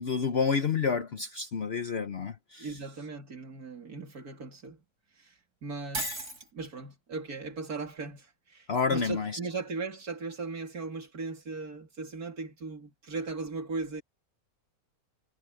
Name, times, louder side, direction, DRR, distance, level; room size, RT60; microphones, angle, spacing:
voice 1, 0.0-2.7 8.7-9.4, left 5 dB, 50° left, 1.0 m, -29 dB
voice 2, 2.6-4.8 5.2-6.1 6.5-14.0, right 4 dB, 85° right, 3.4 m, -38 dB
Shatter, 5.9-6.5, right 1 dB, 55° right, 5.7 m, -34 dB
omnidirectional pair, 1.6 m